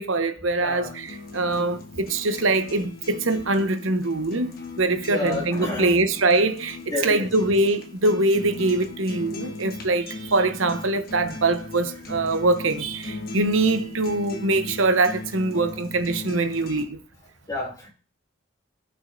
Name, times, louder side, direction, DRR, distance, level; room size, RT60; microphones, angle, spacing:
voice 1, 0.0-17.0, right 2 dB, 90° right, 0.9 m, -23 dB
voice 2, 0.6-0.9 5.1-6.1 6.9-7.3 9.4-9.5 15.5-15.7 17.5-17.9, left 2 dB, 20° left, 2.2 m, -30 dB
sound 1, 0.8-16.8, left 3 dB, 50° left, 1.2 m, -38 dB
15.0 x 6.1 x 2.7 m
head